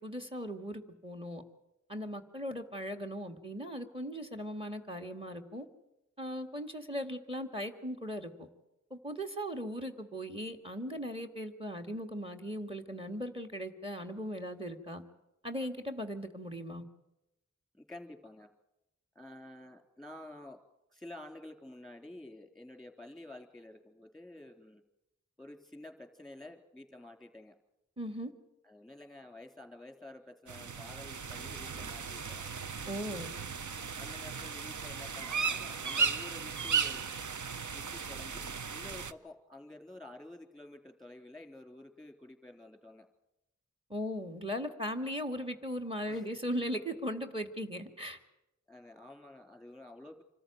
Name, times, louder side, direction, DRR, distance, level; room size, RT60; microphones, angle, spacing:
voice 1, 0.0-1.4 1.9-5.7 6.2-8.5 8.9-15.0 15.4-16.8 28.0-28.3 32.9-33.3 43.9-48.2, equal, 20° right, 8 dB, 2.0 m, -38 dB
voice 2, 17.7-18.5 19.2-20.6 20.9-24.8 25.4-27.6 28.6-32.5 34.0-37.0 37.7-43.1 46.1-46.4 48.7-50.2, left 1 dB, ahead, 5 dB, 3.5 m, -50 dB
sound 1, 30.5-39.1, right 5 dB, 70° right, 0.7 m, -36 dB
26.0 x 14.0 x 9.3 m, 0.92 s
wide cardioid pair, 45°, 31 cm